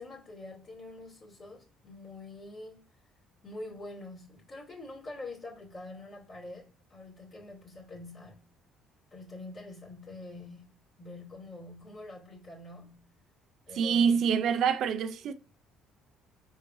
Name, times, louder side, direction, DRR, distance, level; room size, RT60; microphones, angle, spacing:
voice 1, 0.0-2.9 3.4-8.5 9.1-13.1 13.7-14.2, left 2 dB, 50° left, 2.2 m, -45 dB
voice 2, 13.7-15.3, right 7 dB, 65° right, 0.5 m, -26 dB
5.1 x 3.8 x 2.7 m
cardioid pair, 95°, 0 cm